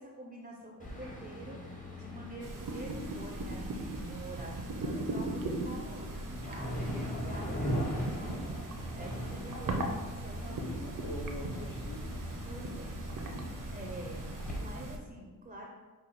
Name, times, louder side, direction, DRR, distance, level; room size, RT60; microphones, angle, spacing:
voice 1, 0.0-1.6 1.9-8.4 8.7-10.8 12.5-13.0 13.7-15.7, right 1 dB, 25° right, -1 dB, 0.5 m, -47 dB
sound 1, 0.8-14.6, equal, 25° left, 0.9 m, -40 dB
sound 2, 2.4-15.0, right 2 dB, 65° right, 0.6 m, -39 dB
voice 2, 10.4-12.5, left 1 dB, 60° left, -4 dB, 0.7 m, -45 dB
5.3 x 2.3 x 4.2 m, 1.3 s
wide cardioid pair, 125°, 35 cm